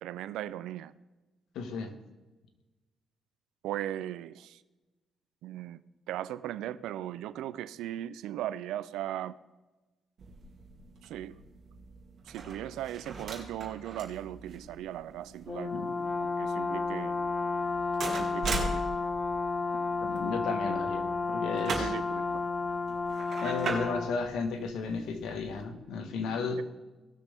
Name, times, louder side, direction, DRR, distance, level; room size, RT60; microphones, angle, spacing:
voice 1, 0.0-0.9 3.6-4.6 5.4-5.8 6.1-9.4 11.0-11.3 12.3-15.9 16.4-17.1 18.0-18.9 20.7-20.8 21.7-22.4, right 12 dB, 90° right, 15 dB, 0.4 m, -38 dB
voice 2, 1.5-1.9 15.7-15.9 20.0-21.9 23.4-26.6, left 4 dB, 80° left, 6 dB, 1.5 m, -34 dB
sound 1, 10.2-25.6, right 3 dB, 55° right, 2.6 m, -41 dB
Brass instrument, 15.5-24.2, left 4 dB, 25° left, 0.8 m, -32 dB
18.0 x 6.6 x 3.5 m, 1.1 s
cardioid pair, 90°, 0 cm